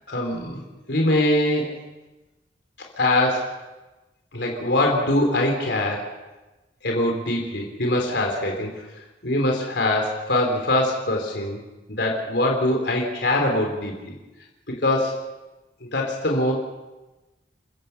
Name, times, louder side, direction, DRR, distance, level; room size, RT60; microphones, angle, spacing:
voice 1, 0.1-0.6 0.9-1.7 3.0-3.5 4.3-6.1 6.8-8.7 9.2-11.6 11.9-14.2 14.7-15.3 15.8-16.5, left 1 dB, 75° left, 1 dB, 3.6 m, -23 dB
30.0 x 15.0 x 5.9 m, 1.1 s
head